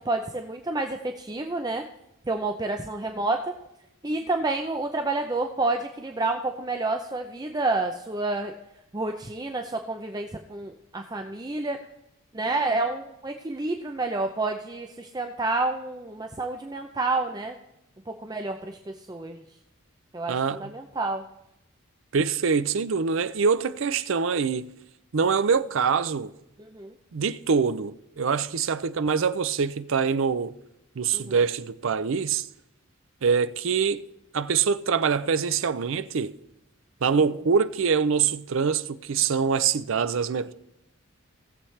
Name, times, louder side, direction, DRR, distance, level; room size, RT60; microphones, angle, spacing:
voice 1, 0.0-1.8 2.3-3.5 4.0-8.5 8.9-11.8 12.3-17.5 18.1-19.4 20.1-21.2 26.7-26.9 31.1-31.3, right 2 dB, 20° right, 0.5 m, -29 dB
voice 2, 20.3-20.7 22.1-24.7 25.1-26.3 27.1-30.5 31.0-32.5 33.2-34.0 34.3-36.4 37.0-40.5, right 6 dB, 70° right, 0.5 m, -24 dB
18.5 x 7.2 x 3.3 m
head